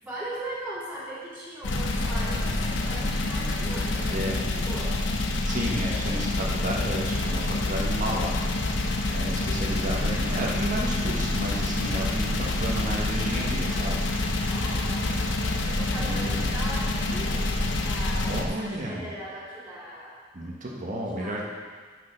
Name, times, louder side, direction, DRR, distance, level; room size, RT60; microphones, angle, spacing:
voice 1, 0.0-5.0 14.4-15.4 15.6-20.1 21.1-21.5, right 1 dB, 5° right, -10 dB, 2.9 m, -39 dB
sound 1, 1.6-18.4, left 2 dB, 75° left, 0.9 m, -27 dB
voice 2, 5.4-8.4 9.1-14.0 15.9-16.5 18.3-19.1 20.3-21.5, right 1 dB, 45° right, -2 dB, 1.3 m, -32 dB
8.9 x 6.6 x 5.1 m, 1.5 s
head